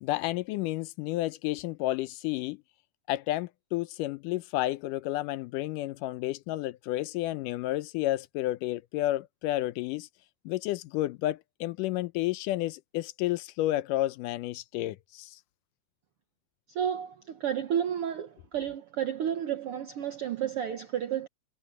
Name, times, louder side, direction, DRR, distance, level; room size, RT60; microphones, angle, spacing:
voice 1, 0.0-2.6 3.1-10.1 10.5-15.4, left 16 dB, 80° left, 2.2 m, -31 dB
voice 2, 16.7-21.3, right 9 dB, 75° right, 1.3 m, -31 dB
omnidirectional pair, 3.8 m